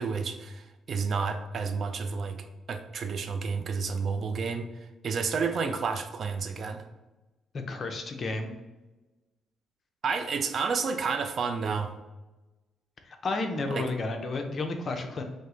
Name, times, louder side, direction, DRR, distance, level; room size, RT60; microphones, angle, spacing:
voice 1, 0.0-4.7 5.0-6.9 10.0-11.9 13.7-13.8, right 5 dB, 55° right, 7 dB, 0.4 m, -30 dB
voice 2, 7.5-8.5 13.0-15.2, left 3 dB, 45° left, 4 dB, 0.6 m, -32 dB
5.2 x 2.1 x 3.8 m, 1.1 s
cardioid pair, 90°, 0 cm